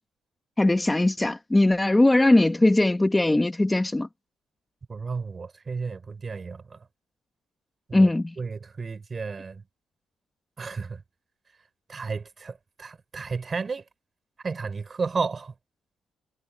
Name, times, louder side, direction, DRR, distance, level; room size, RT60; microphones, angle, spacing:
voice 1, 0.6-4.1 7.9-8.3, left 2 dB, 15° left, 1.4 m, -20 dB
voice 2, 4.9-6.8 7.9-8.1 8.4-9.6 10.6-11.0 11.9-13.9 14.4-15.5, right 4 dB, 35° right, 4.3 m, -32 dB
cardioid pair, 90°, 0 cm